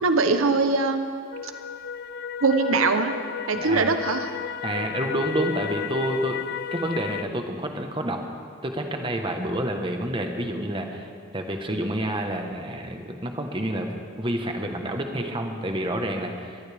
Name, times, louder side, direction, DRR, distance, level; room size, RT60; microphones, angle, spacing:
voice 1, 0.0-1.0 1.4-1.5 2.4-3.1 3.5-4.3, right 3 dB, 80° right, 8 dB, 0.9 m, -22 dB
sound 1, 1.3-7.2, left 8 dB, 50° left, 0.3 m, -33 dB
voice 2, 3.5-3.9 4.6-6.4 6.7-8.2 8.6-11.1 11.3-16.6, right 1 dB, 25° right, 4 dB, 1.3 m, -29 dB
22.0 x 15.0 x 3.5 m, 2.3 s
head